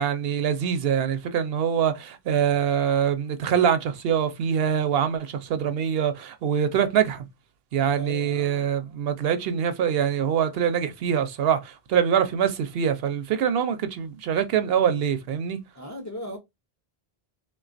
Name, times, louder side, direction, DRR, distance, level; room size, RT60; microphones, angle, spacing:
voice 1, 0.0-7.3 7.7-15.6, right 8 dB, 75° right, 0.8 m, -24 dB
voice 2, 7.9-8.7 15.7-16.4, equal, 25° left, 0.4 m, -37 dB
3.5 x 2.3 x 2.5 m
omnidirectional pair, 1.0 m